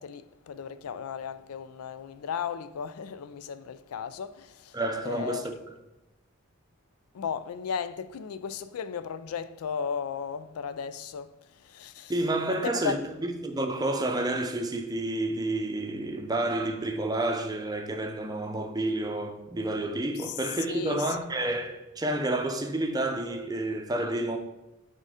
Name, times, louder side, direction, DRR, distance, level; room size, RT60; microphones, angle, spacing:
voice 1, 0.0-4.8 5.0-5.4 7.1-11.3 11.6-12.1 12.5-13.0 20.2-20.4 20.7-21.1, left 6 dB, 90° left, 0.4 m, -35 dB
voice 2, 4.7-5.5 12.1-24.4, right 1 dB, 20° right, 0.6 m, -30 dB
6.5 x 3.7 x 4.9 m
head